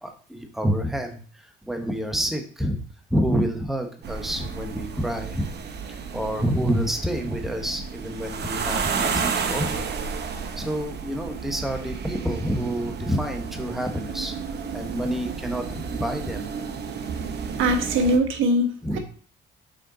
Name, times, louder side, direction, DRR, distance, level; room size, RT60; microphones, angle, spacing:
voice 1, 0.0-2.8 3.1-5.5 6.1-9.8 10.6-14.3 14.7-16.5 18.8-19.0, equal, ahead, 4 dB, 1.1 m, -28 dB
sound 1, 4.0-18.2, right 6 dB, 55° right, 0.9 m, -32 dB
voice 2, 17.6-19.0, right 1 dB, 80° right, 5 dB, 1.2 m, -22 dB
6.5 x 4.4 x 3.9 m, 0.43 s
cardioid pair, 90°, 20 cm